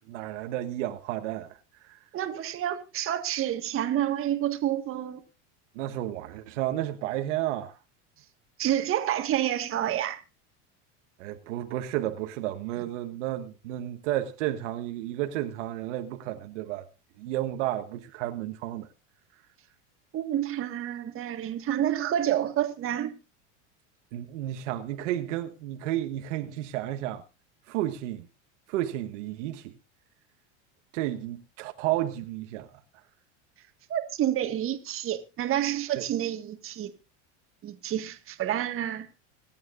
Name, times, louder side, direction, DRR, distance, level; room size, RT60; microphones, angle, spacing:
voice 1, 0.1-1.6 1.8-2.0 5.7-7.8 11.2-16.8 17.2-18.9 24.1-27.2 27.7-28.3 28.7-29.7 30.9-32.7 35.9-36.1, right 13 dB, 80° right, 1.4 m, -32 dB
voice 2, 2.1-5.2 8.6-10.2 20.1-23.1 33.9-36.9 37.6-39.1, right 11 dB, 35° right, 1.8 m, -29 dB
25.5 x 9.2 x 2.6 m
supercardioid pair, 130°, 36 cm